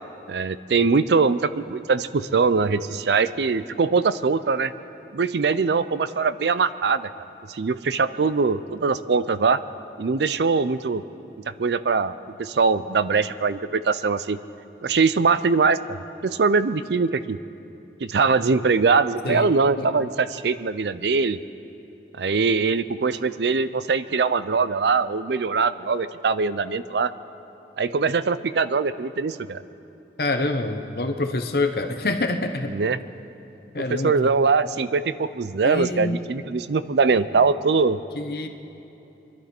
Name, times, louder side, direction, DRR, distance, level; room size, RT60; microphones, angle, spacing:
voice 1, 0.3-4.7 5.1-7.1 7.5-9.6 10.0-11.0 11.6-12.1 12.4-14.4 14.8-17.4 18.0-21.4 22.2-27.1 27.8-29.6 32.7-33.0 33.9-38.0, right 4 dB, 75° right, 15 dB, 0.5 m, -22 dB
voice 2, 19.8-20.1 30.2-32.7 33.7-34.1 35.6-36.2 38.1-38.5, left 2 dB, 60° left, 6 dB, 1.0 m, -26 dB
24.5 x 12.0 x 4.4 m, 2.9 s
head